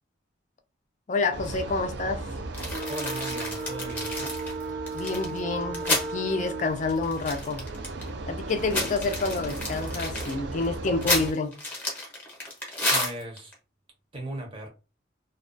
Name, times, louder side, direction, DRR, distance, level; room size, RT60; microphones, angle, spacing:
voice 1, 1.1-2.2 4.9-7.6 8.3-11.5, left 3 dB, 40° left, 0.4 m, -28 dB
sound 1, 1.3-11.3, right 3 dB, 65° right, 0.3 m, -35 dB
sound 2, 2.5-6.1 6.5-6.6 6.8-8.1 8.5-13.5, left 2 dB, 10° left, 0.7 m, -31 dB
voice 2, 2.9-4.4 12.9-13.5 14.1-14.7, right 1 dB, 30° right, 0.7 m, -37 dB
2.3 x 2.2 x 2.4 m
head